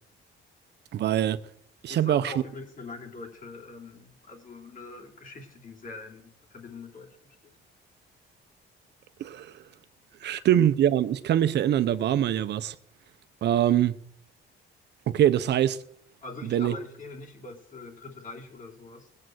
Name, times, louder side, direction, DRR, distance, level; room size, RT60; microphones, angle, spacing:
voice 1, 0.9-1.4 1.8-2.3 9.2-9.6 10.2-12.7 13.4-14.0 15.1-15.8 16.4-16.8, right 11 dB, 60° right, 0.7 m, -23 dB
voice 2, 1.9-7.5 16.2-19.1, left 3 dB, 40° left, 3.1 m, -43 dB
18.5 x 7.6 x 7.9 m
cardioid pair, 160°, 20 cm